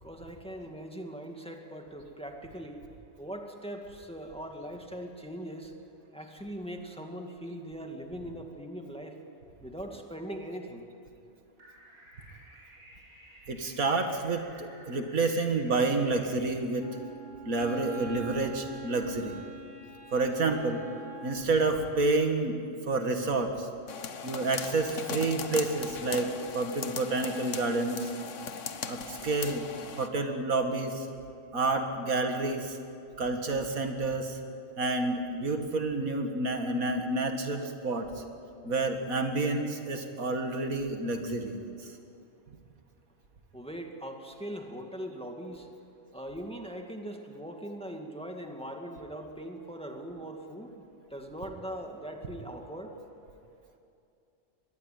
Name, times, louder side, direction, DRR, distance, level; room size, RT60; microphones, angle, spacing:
voice 1, 0.0-2.8 3.2-5.7 6.1-9.2 9.6-10.9 43.5-45.7 46.1-52.9, right 1 dB, 5° left, 2 dB, 2.2 m, -41 dB
sound 1, 11.6-16.5, right 1 dB, 70° right, 7.8 m, -54 dB
voice 2, 13.5-16.9 17.4-19.4 20.1-20.8 21.2-22.6 22.9-23.7 24.2-28.1 28.9-29.6 30.0-31.1 31.5-32.8 33.2-34.4 34.8-38.1 38.6-41.6, right 3 dB, 85° right, 5 dB, 2.3 m, -29 dB
Wind instrument woodwind instrument, 16.8-21.6, right 1 dB, 40° left, 2.4 m, -43 dB
sound 2, 23.9-30.1, left 6 dB, 65° left, 1.4 m, -38 dB
24.0 x 21.0 x 9.4 m, 2.6 s
omnidirectional pair, 1.4 m